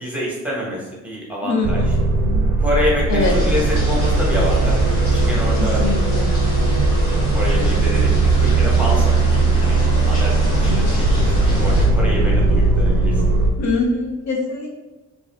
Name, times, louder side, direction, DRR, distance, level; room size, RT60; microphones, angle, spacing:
voice 1, 0.0-2.0 2.6-4.8 5.1-5.8 7.1-9.8 10.1-13.2, left 1 dB, 5° right, -4 dB, 1.0 m, -26 dB
voice 2, 1.4-2.1 3.1-3.3 5.6-6.3 7.6-7.9 10.7-10.9 13.6-14.8, left 3 dB, 65° left, 0 dB, 0.6 m, -24 dB
sound 1, 1.6-13.5, right 3 dB, 75° right, 0.5 m, -18 dB
sound 2, 3.2-11.9, left 1 dB, 85° left, 1.5 m, -30 dB
2.5 x 2.3 x 3.3 m, 1.1 s
cardioid pair, 85°, 30 cm